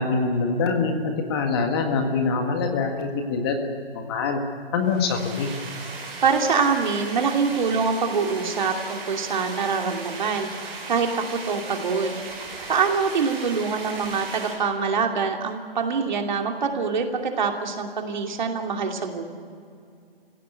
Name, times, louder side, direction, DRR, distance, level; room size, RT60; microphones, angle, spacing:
voice 1, 0.0-4.4 4.7-5.5, left 4 dB, 25° left, 4 dB, 1.8 m, -24 dB
sound 1, 4.8-14.5, right 3 dB, 20° right, 5.5 m, -37 dB
voice 2, 6.2-12.2 12.7-19.2, right 5 dB, 50° right, 3 dB, 2.8 m, -25 dB
25.0 x 16.5 x 9.5 m, 2.3 s
hypercardioid pair, 155°, 30 cm